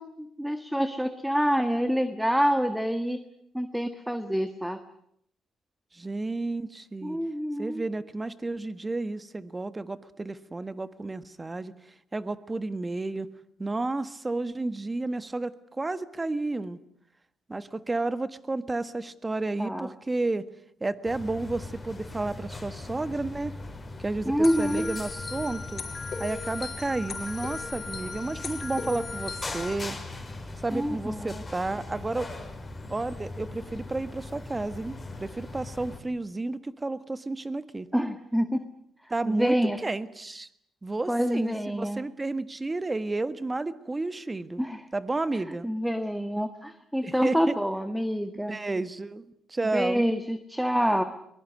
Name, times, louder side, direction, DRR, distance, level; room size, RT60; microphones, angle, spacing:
voice 1, 0.0-3.2 3.5-4.8 7.0-7.8 19.6-19.9 24.2-24.9 30.7-31.4 37.9-38.7 39.2-39.8 41.1-42.0 44.6-44.8 45.6-48.6 49.6-51.0, equal, ahead, 9 dB, 1.6 m, -27 dB
voice 2, 5.9-7.2 7.6-11.7 12.1-13.3 13.6-16.8 17.5-20.5 20.8-23.5 24.0-25.8 26.2-30.0 30.6-32.3 32.9-37.9 39.1-39.6 39.8-40.5 40.8-44.6 44.9-45.7 47.0-47.5 48.5-50.1, right 2 dB, 20° right, 13 dB, 1.5 m, -31 dB
sound 1, 21.0-36.0, left 2 dB, 20° left, 5.6 m, -40 dB
sound 2, 24.4-29.7, left 4 dB, 40° left, 4.9 m, -37 dB
22.5 x 21.5 x 9.6 m, 0.71 s
cardioid pair, 100°, 0 cm